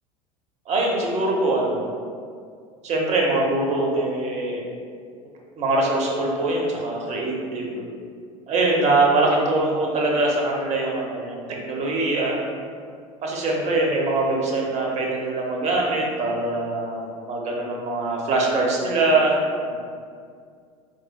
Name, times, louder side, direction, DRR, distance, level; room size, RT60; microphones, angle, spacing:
voice 1, 0.7-1.9 2.8-4.6 5.6-7.8 8.5-12.4 13.2-19.4 19.7-19.8, right 2 dB, 40° right, -1 dB, 0.9 m, -23 dB
4.0 x 3.2 x 2.2 m, 2.2 s
hypercardioid pair, 85°, 18 cm